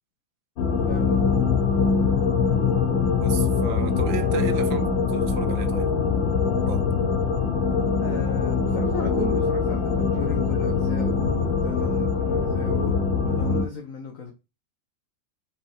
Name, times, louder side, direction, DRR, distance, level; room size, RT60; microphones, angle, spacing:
sound 1, 0.6-13.6, left 5 dB, 80° left, 2.2 m, -23 dB
voice 1, 0.8-1.5 2.5-2.6 8.0-12.9 13.2-14.3, left 4 dB, 45° left, 1.6 m, -35 dB
voice 2, 3.1-5.9 6.7-6.9, right 9 dB, 90° right, 1.7 m, -34 dB
5.8 x 5.2 x 5.1 m
omnidirectional pair, 2.0 m